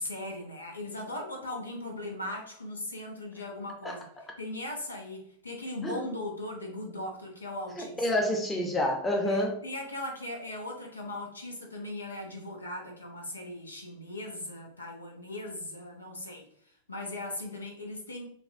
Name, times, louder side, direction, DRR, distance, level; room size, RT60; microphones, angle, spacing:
voice 1, 0.0-4.1 4.4-8.1 9.2-16.4 16.9-18.3, left 1 dB, 80° left, 1 dB, 0.8 m, -38 dB
voice 2, 7.8-9.6, left 1 dB, 15° left, 2 dB, 0.8 m, -28 dB
5.6 x 2.4 x 2.7 m, 0.65 s
figure-of-eight pair, 90°, 0 cm